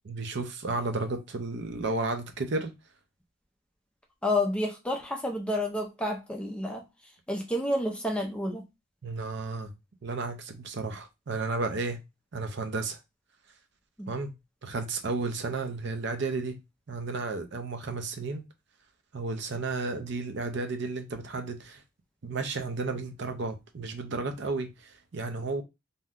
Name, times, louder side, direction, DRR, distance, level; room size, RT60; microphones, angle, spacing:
voice 1, 0.1-2.7 9.0-9.7 10.0-12.0 12.3-13.0 14.1-14.3 14.6-16.6 16.9-18.4 19.1-21.8 22.2-25.6, right 3 dB, 55° right, 0.5 m, -33 dB
voice 2, 4.2-6.8 7.3-8.6 14.0-14.1, left 1 dB, 5° left, 0.4 m, -29 dB
2.7 x 2.2 x 3.5 m
head